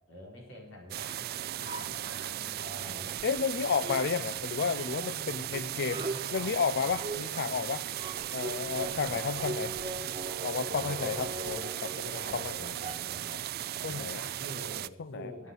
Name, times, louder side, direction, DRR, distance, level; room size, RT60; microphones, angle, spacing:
voice 1, 0.1-3.2 4.3-4.4 5.8-6.5 6.8-7.2 7.9-8.1 8.7-10.1 10.6-11.4 12.2-13.5 13.7-15.5, equal, 75° left, -1 dB, 4.5 m, -47 dB
sound 1, 0.9-14.9, right 13 dB, 50° right, 0.3 m, -37 dB
sound 2, 1.6-3.5 3.8-13.3, right 2 dB, 25° right, 1.4 m, -41 dB
voice 2, 3.2-6.0 6.3-7.8 8.3-9.7 10.4-12.7 13.8-14.2 15.0-15.3, left 6 dB, 55° left, 14 dB, 0.5 m, -32 dB
9.5 x 8.1 x 9.1 m, 0.93 s
head